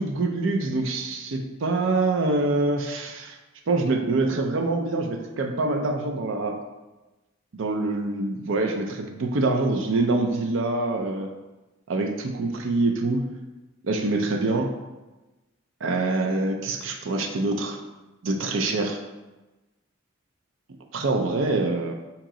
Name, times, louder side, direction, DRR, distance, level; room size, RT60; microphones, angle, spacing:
voice 1, 0.0-3.4 3.7-6.6 7.5-11.3 11.9-13.2 13.8-14.7 15.8-17.8 18.2-19.0 20.9-21.9, right 2 dB, 70° right, 4 dB, 0.5 m, -25 dB
4.6 x 2.9 x 3.7 m, 1.1 s
head